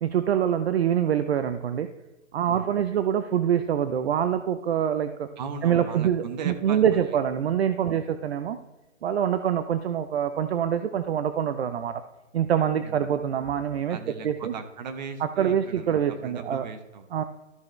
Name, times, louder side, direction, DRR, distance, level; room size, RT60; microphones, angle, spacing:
voice 1, 0.0-1.9 2.3-5.3 5.6-8.6 9.0-12.0 12.3-14.0 14.2-14.5 15.4-16.6 17.1-17.2, right 9 dB, 55° right, 10 dB, 0.6 m, -25 dB
voice 2, 5.4-7.2 7.8-8.1 12.8-13.1 13.9-17.1, right 5 dB, 35° right, 8 dB, 1.1 m, -38 dB
13.5 x 6.6 x 3.2 m, 1.1 s
hypercardioid pair, 160°, 37 cm